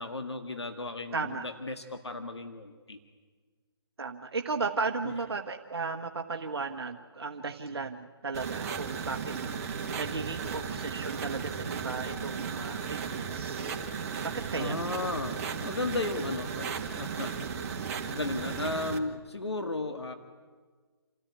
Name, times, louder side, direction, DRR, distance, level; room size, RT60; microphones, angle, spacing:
voice 1, 0.0-3.0 5.0-5.1 14.6-17.3 18.1-20.1, left 2 dB, 90° left, 7 dB, 1.7 m, -35 dB
voice 2, 1.1-1.5 4.0-13.8 14.2-14.7, right 4 dB, 70° right, 4 dB, 1.4 m, -35 dB
sound 1, 8.3-19.0, right 6 dB, 35° right, 2.2 m, -35 dB
28.0 x 14.0 x 9.6 m, 1.5 s
figure-of-eight pair, 145°, 14 cm